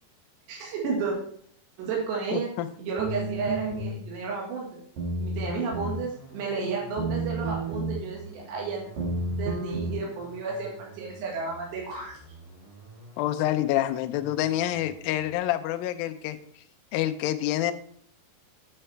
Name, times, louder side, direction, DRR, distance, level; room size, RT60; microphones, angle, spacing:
voice 1, 0.5-1.2 1.8-2.5 2.8-4.7 5.2-8.8 9.3-12.2, right 5 dB, 85° right, -2 dB, 3.9 m, -32 dB
voice 2, 2.3-2.7 13.2-16.4 16.9-17.7, left 13 dB, 85° left, 9 dB, 2.1 m, -27 dB
sound 1, 3.0-4.0 5.0-6.0 7.0-8.0 9.0-9.9, right 2 dB, 50° right, 2.7 m, -31 dB
sound 2, 5.4-15.4, right 2 dB, 30° right, 4.3 m, -50 dB
9.0 x 7.4 x 3.3 m, 0.63 s
omnidirectional pair, 4.8 m